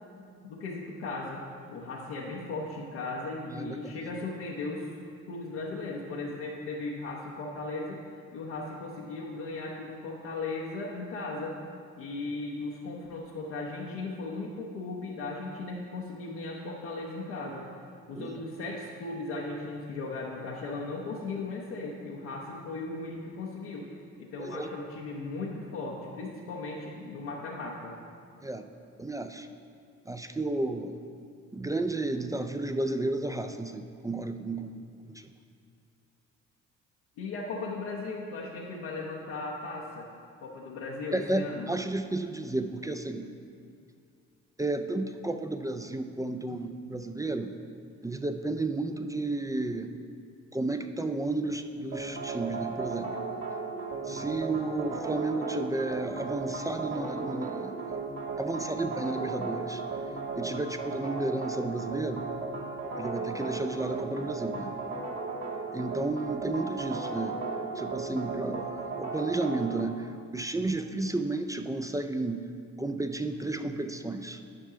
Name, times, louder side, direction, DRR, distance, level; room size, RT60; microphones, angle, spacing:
voice 1, 0.1-1.4 1.7-4.9 5.3-8.0 8.3-11.6 12.0-17.6 18.1-23.9 24.2-27.9 37.2-40.1 40.4-41.7 54.1-54.2, left 3 dB, 75° left, -4 dB, 0.9 m, -37 dB
voice 2, 3.5-3.9 18.1-18.4 24.4-24.7 28.4-28.6 29.0-29.5 30.1-31.0 31.5-34.7 35.1-35.2 41.1-43.3 44.6-47.5 48.0-49.9 50.5-53.2 54.1-58.0 58.4-59.8 60.4-62.3 63.0-64.8 65.7-67.4 67.8-72.4 72.8-74.4, right 2 dB, 10° right, 7 dB, 0.3 m, -32 dB
sound 1, 51.9-69.8, right 4 dB, 50° right, 1.3 m, -35 dB
10.0 x 5.5 x 3.7 m, 2.3 s
hypercardioid pair, 50°, 38 cm